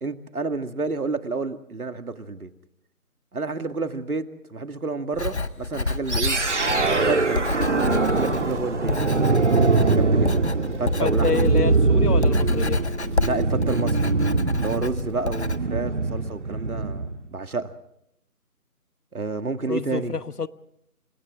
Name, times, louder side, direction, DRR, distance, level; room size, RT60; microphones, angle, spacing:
voice 1, 0.0-2.5 3.3-6.4 6.9-9.7 9.9-10.3 10.8-11.6 13.2-14.1 14.6-17.7 19.1-20.2, right 3 dB, 65° right, 2.1 m, -30 dB
Writing, 5.1-15.6, left 3 dB, 45° left, 1.1 m, -30 dB
sound 1, 6.1-17.2, right 3 dB, 50° right, 1.8 m, -22 dB
voice 2, 11.0-12.8 19.7-20.5, left 5 dB, 75° left, 1.2 m, -27 dB
29.5 x 27.0 x 3.7 m
figure-of-eight pair, 165°, 46 cm